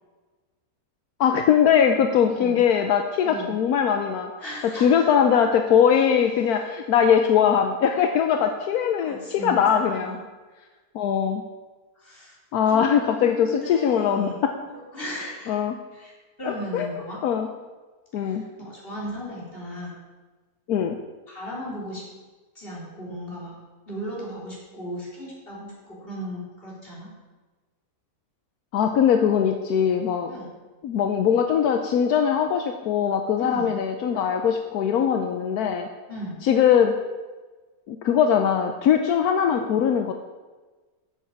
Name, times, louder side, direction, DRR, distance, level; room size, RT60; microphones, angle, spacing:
voice 1, 1.2-4.3 4.7-10.2 10.9-11.4 12.5-14.5 15.5-15.7 16.5-16.9 17.2-17.5 18.1-18.4 20.7-21.0 28.7-30.3 30.8-35.9 36.4-36.9 37.9-40.1, left 8 dB, 80° left, 5 dB, 1.2 m, -21 dB
voice 2, 2.3-2.6 3.2-3.6 4.4-5.1 9.0-10.2 12.0-12.4 12.7-14.4 14.9-15.6 15.9-16.1 16.4-17.2 18.1-19.9 21.3-22.0 22.6-23.6 23.9-27.1 30.3-30.5 33.4-33.8 36.1-36.4, equal, 35° left, -5 dB, 4.0 m, -36 dB
9.2 x 7.4 x 7.4 m, 1.3 s
omnidirectional pair, 1.6 m